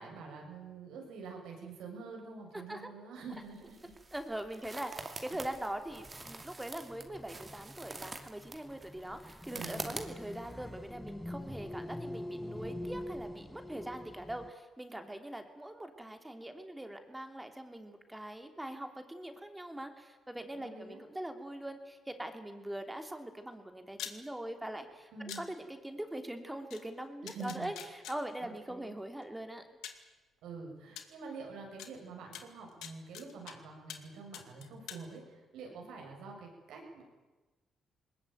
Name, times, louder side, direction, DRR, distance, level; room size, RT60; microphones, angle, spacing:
voice 1, 0.0-3.9 9.5-9.9 20.5-21.0 25.1-25.5 27.2-27.7 28.4-28.9 30.4-37.0, right 4 dB, 85° right, 1 dB, 7.2 m, -46 dB
sound 1, 3.3-10.5, right 3 dB, 30° right, 2.8 m, -46 dB
voice 2, 4.1-25.1 25.4-27.7 28.1-29.6, right 1 dB, 10° right, 6 dB, 3.0 m, -42 dB
sound 2, 5.8-14.5, left 1 dB, 10° left, 1.2 m, -45 dB
sound 3, 23.9-24.2 25.3-25.4 26.7-26.8 27.3-28.2 29.2-29.3 29.8-30.0 31.0-31.1 31.8-31.9 32.3-33.5 33.9-34.1 34.3-35.0, left 10 dB, 85° left, 2.2 m, -44 dB
20.5 x 20.5 x 9.3 m, 1.2 s
cardioid pair, 90°, 0 cm